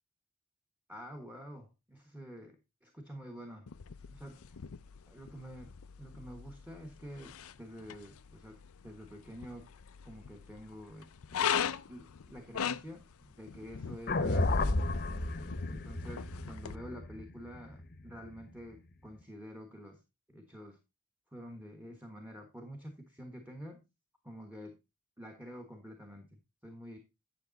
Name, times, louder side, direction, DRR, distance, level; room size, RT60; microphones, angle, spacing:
voice 1, 0.9-3.7 4.1-4.6 5.1-9.7 10.0-11.6 11.9-14.5 15.1-15.4 15.7-20.0 20.3-20.8 21.3-23.9 24.2-24.8 25.2-27.0, equal, 5° right, 4 dB, 1.4 m, -48 dB
sound 1, 3.7-16.7, left 8 dB, 70° left, 0.5 m, -41 dB
sound 2, 14.1-18.3, left 2 dB, 45° left, 1.0 m, -32 dB
10.0 x 6.7 x 4.0 m, 0.25 s
head